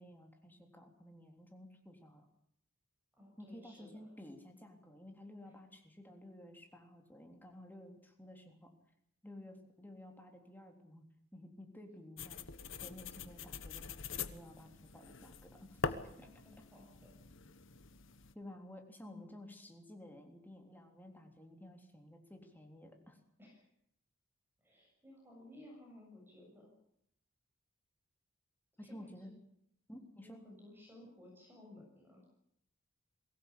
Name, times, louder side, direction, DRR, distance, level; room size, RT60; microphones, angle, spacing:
voice 1, 0.0-2.3 3.4-8.7 9.2-11.0 11.3-12.4 12.8-16.3 18.3-23.2 28.8-29.4 29.9-30.4, left 1 dB, 10° left, 3 dB, 3.5 m, -53 dB
voice 2, 3.1-4.1 16.2-17.1 19.0-19.3 23.4-23.7 24.6-26.7 28.8-29.3 30.2-32.2, left 1 dB, 10° right, -1 dB, 7.4 m, -57 dB
sound 1, 12.2-18.3, left 4 dB, 65° left, 1.4 m, -44 dB
23.0 x 17.5 x 8.7 m, 0.73 s
head